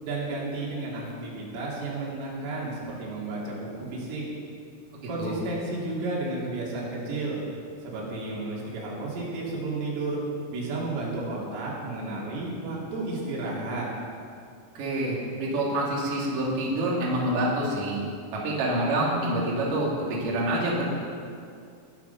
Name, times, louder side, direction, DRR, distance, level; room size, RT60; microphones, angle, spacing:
voice 1, 0.0-4.2 5.1-7.4 7.8-10.2 10.5-13.9, right 2 dB, 75° right, -5 dB, 5.6 m, -32 dB
voice 2, 5.0-5.4 14.8-18.0 18.3-20.9, right 1 dB, 45° right, -5 dB, 3.9 m, -27 dB
20.5 x 11.0 x 5.8 m, 2.3 s
omnidirectional pair, 5.9 m